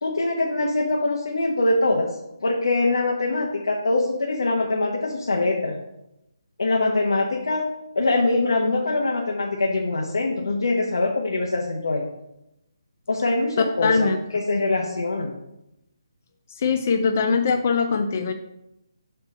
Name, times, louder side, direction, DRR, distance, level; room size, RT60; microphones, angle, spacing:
voice 1, 0.0-2.1 2.4-5.8 6.6-7.6 7.9-12.1 13.1-15.3, left 2 dB, 80° left, 0 dB, 1.1 m, -23 dB
voice 2, 13.8-14.2 16.6-18.3, left 5 dB, 30° left, 5 dB, 0.4 m, -21 dB
5.8 x 4.5 x 5.4 m, 0.87 s
hypercardioid pair, 175°, 2 cm